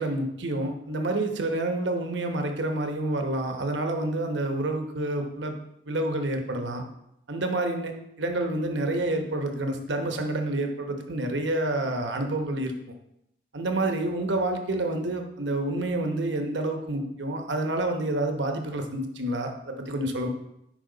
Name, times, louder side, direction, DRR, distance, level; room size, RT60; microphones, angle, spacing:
voice 1, 0.0-5.5 5.8-6.8 7.3-12.7 13.5-20.3, right 2 dB, 75° right, 4 dB, 1.1 m, -28 dB
10.0 x 4.9 x 4.0 m, 0.81 s
head